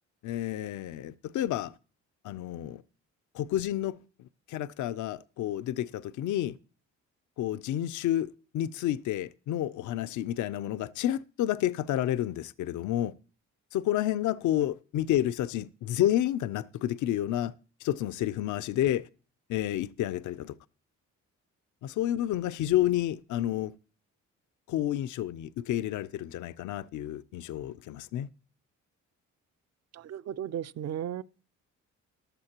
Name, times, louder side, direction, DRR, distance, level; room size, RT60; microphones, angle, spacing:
voice 1, 0.2-1.7 2.2-2.8 3.3-4.0 4.5-6.6 7.4-13.1 13.7-17.5 17.8-19.1 19.5-20.5 21.8-23.7 24.7-28.3, left 12 dB, 75° left, 0.6 m, -30 dB
voice 2, 29.9-31.2, right 10 dB, 60° right, 0.6 m, -35 dB
14.5 x 12.0 x 3.0 m
cardioid pair, 90°, 30 cm